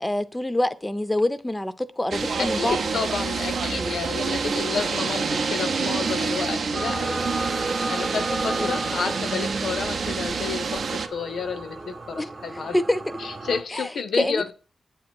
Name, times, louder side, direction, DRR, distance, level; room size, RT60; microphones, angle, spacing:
voice 1, 0.0-2.8 8.6-8.7 12.2-12.3 12.7-13.0 13.7-13.9 14.2-14.5, left 1 dB, 15° left, 0.4 m, -25 dB
sound 1, 2.1-11.1, right 5 dB, 75° right, 0.5 m, -27 dB
voice 2, 2.4-7.6 7.9-12.8 13.2-14.5, left 5 dB, 85° left, 0.6 m, -31 dB
sound 2, 6.7-13.6, right 2 dB, 45° right, 0.8 m, -33 dB
7.7 x 2.8 x 6.0 m
cardioid pair, 90°, 0 cm